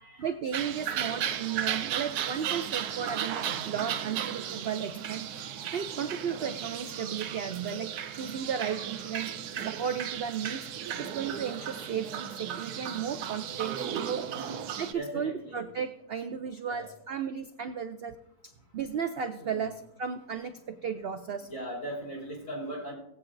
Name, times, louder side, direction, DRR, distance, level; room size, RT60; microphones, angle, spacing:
voice 1, 0.2-5.3 5.7-9.3 9.6-10.7 11.0-14.3 14.8-18.2 18.4-21.5, right 7 dB, 65° right, 8 dB, 0.6 m, -34 dB
sound 1, 0.5-14.9, right 9 dB, 90° right, 1.2 m, -35 dB
voice 2, 14.9-15.7 16.6-16.9 19.4-19.6 21.5-22.9, right 1 dB, 55° left, -2 dB, 3.8 m, -39 dB
18.5 x 8.3 x 2.6 m, 0.83 s
omnidirectional pair, 1.6 m